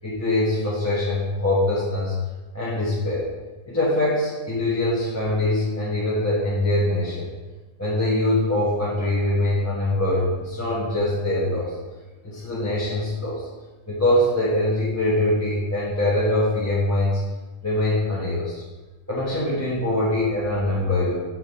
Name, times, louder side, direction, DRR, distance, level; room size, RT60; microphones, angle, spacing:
voice 1, 0.0-2.1 2.5-3.3 3.7-7.3 7.8-11.8 12.2-13.5 13.9-17.2 17.6-18.6 19.1-21.2, left 1 dB, 10° left, -9 dB, 1.2 m, -23 dB
6.3 x 5.5 x 4.1 m, 1.2 s
omnidirectional pair, 1.6 m